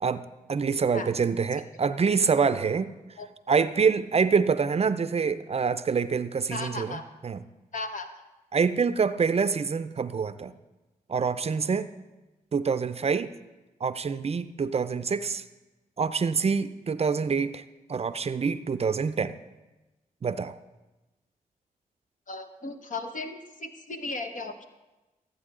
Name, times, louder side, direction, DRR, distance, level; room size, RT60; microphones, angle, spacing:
voice 1, 0.0-2.9 3.5-7.4 8.5-10.5 11.1-11.9 12.5-13.3 13.8-15.4 16.0-17.6 17.9-19.4 20.2-20.6, right 5 dB, 40° right, 13 dB, 0.5 m, -26 dB
voice 2, 6.5-7.0 7.7-8.1 22.3-24.6, left 3 dB, 55° left, 6 dB, 1.0 m, -36 dB
14.0 x 8.3 x 3.7 m, 1.1 s
cardioid pair, 50°, 15 cm